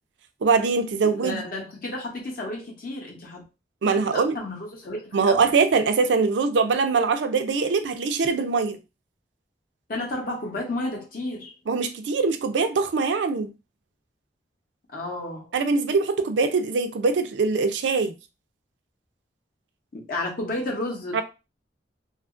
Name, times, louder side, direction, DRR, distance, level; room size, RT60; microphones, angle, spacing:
voice 1, 0.4-1.4 3.8-4.4 5.1-8.8 11.7-13.5 15.5-18.1 21.1-21.2, right 4 dB, 90° right, 0.4 m, -22 dB
voice 2, 1.0-3.4 3.8-5.4 9.9-11.5 14.9-15.5 19.9-21.2, left 2 dB, 55° left, 0.7 m, -32 dB
2.7 x 2.4 x 2.4 m
head